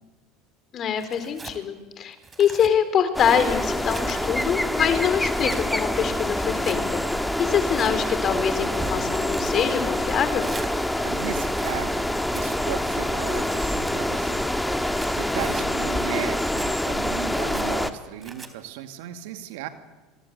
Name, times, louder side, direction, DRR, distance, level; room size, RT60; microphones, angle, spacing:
voice 1, 0.7-7.0 7.4-10.5 15.4-15.7, left 8 dB, 45° left, 11 dB, 4.0 m, -24 dB
Tearing, 1.0-1.6 2.1-2.7 3.3-4.5 5.0-5.6 6.4-6.8 7.5-7.9 8.5-9.6 10.4-10.7 11.3-11.8 12.3-12.6 13.3-13.9 14.7-15.7 16.3-16.7 17.3-17.7 18.2-18.5, right 4 dB, 25° right, 3.5 m, -41 dB
sound 1, 3.1-17.9, left 1 dB, 5° left, 1.8 m, -26 dB
voice 2, 11.0-12.1 12.3-14.4 14.8-19.7, right 11 dB, 75° right, 9 dB, 2.2 m, -35 dB
27.5 x 22.0 x 8.1 m, 1.2 s
hypercardioid pair, 85°, 0 cm